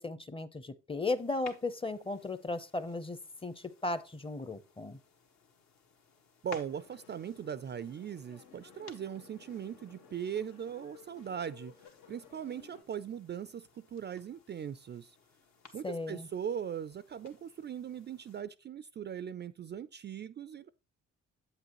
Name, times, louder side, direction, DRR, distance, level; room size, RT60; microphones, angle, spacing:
voice 1, 0.0-5.0 15.8-16.3, left 2 dB, 20° left, 0.7 m, -36 dB
sound 1, 1.1-18.4, left 5 dB, 65° left, 1.6 m, -58 dB
voice 2, 6.4-11.7 12.1-15.2 15.7-20.7, right 8 dB, 35° right, 0.4 m, -40 dB
sound 2, 6.6-12.8, left 6 dB, 80° left, 1.6 m, -57 dB
8.2 x 8.0 x 3.0 m
cardioid pair, 90°, 30 cm